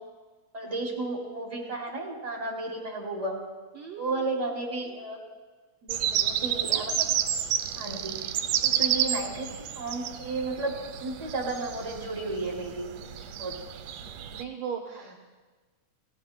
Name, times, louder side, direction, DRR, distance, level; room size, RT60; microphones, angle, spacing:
voice 1, 0.5-3.4 4.0-5.2 5.9-7.1 7.8-8.3 8.6-13.0 13.4-13.5, right 2 dB, 15° right, -3 dB, 2.5 m, -33 dB
voice 2, 3.8-4.3 5.8-6.3 8.4-8.5 13.3-13.5 14.0-15.2, right 7 dB, 65° right, 1 dB, 1.8 m, -40 dB
sound 1, 5.9-14.4, right 10 dB, 85° right, 2.3 m, -30 dB
30.0 x 16.0 x 2.2 m, 1.3 s
omnidirectional pair, 3.5 m